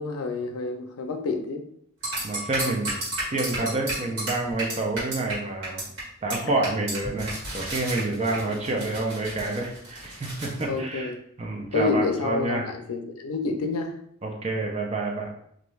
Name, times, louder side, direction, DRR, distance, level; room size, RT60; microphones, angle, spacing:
voice 1, 0.0-1.7 10.7-11.2 11.7-13.9, left 4 dB, 85° left, 5 dB, 0.4 m, -28 dB
sound 1, 2.0-5.3 5.6-6.0 6.3-6.4 6.6-10.6, right 1 dB, 60° right, 1.5 m, -32 dB
voice 2, 2.2-2.9 3.2-5.8 6.2-11.1 11.4-12.7 14.2-15.3, right 2 dB, 30° right, 1 dB, 0.5 m, -28 dB
2.5 x 2.3 x 3.1 m, 0.68 s
head